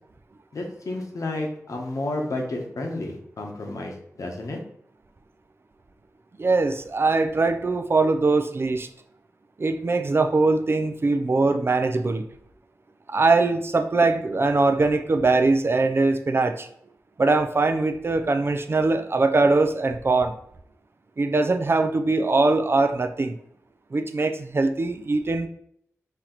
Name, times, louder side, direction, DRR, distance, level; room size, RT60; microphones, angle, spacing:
voice 1, 0.5-4.6, left 2 dB, 70° left, 1 dB, 0.9 m, -31 dB
voice 2, 6.4-8.9 9.6-12.2 13.1-16.7 17.2-20.4 21.2-23.4 23.9-25.5, right 3 dB, 45° right, 7 dB, 0.4 m, -22 dB
4.5 x 2.9 x 3.8 m, 0.70 s
wide cardioid pair, 95°, 6 cm